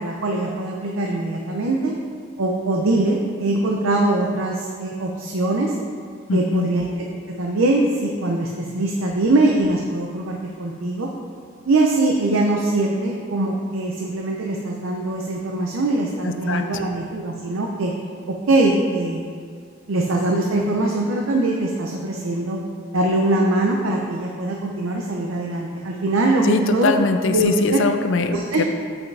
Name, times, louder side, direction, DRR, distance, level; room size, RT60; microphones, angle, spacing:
voice 1, 0.0-1.9 2.4-5.7 6.3-7.1 7.4-11.1 11.7-17.9 18.3-19.2 19.9-22.6 22.9-26.9 27.3-27.8 28.3-28.6, right 2 dB, 90° right, 0 dB, 0.6 m, -22 dB
voice 2, 6.3-6.7 16.5-16.6 26.4-28.6, left 3 dB, 70° left, 7 dB, 0.5 m, -21 dB
8.0 x 5.6 x 3.4 m, 2.1 s
head